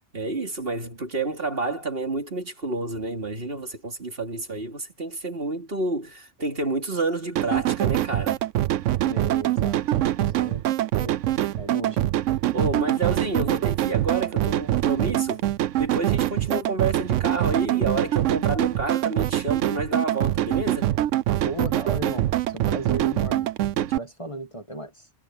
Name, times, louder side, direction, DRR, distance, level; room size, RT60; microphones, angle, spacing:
voice 1, 0.1-8.4 12.5-15.4 15.8-20.9, right 3 dB, 50° right, 3.1 m, -29 dB
sound 1, 7.4-24.0, right 13 dB, 85° right, 1.0 m, -24 dB
voice 2, 9.0-10.6 11.0-11.2 11.6-12.1 21.4-23.5 23.8-25.1, right 1 dB, 25° left, 1.7 m, -35 dB
omnidirectional pair, 1.3 m